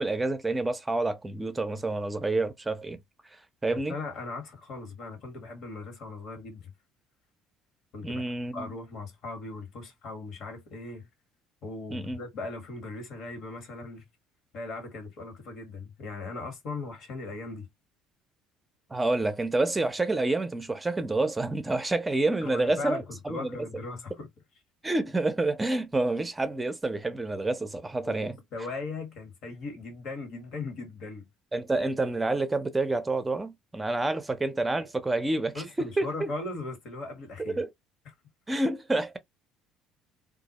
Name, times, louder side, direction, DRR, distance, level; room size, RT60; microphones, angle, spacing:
voice 1, 0.0-3.0 3.6-4.0 8.0-8.7 11.9-12.2 18.9-23.6 24.8-28.4 31.5-36.3 37.5-37.7 38.5-39.2, right 2 dB, 15° right, 0.6 m, -28 dB
voice 2, 3.9-6.7 7.9-8.2 8.5-11.1 11.6-14.0 14.5-17.7 22.4-24.3 28.1-31.3 34.8-34.9 35.5-37.6, left 3 dB, 65° left, 1.3 m, -38 dB
2.3 x 2.0 x 2.9 m
hypercardioid pair, 70°, 0 cm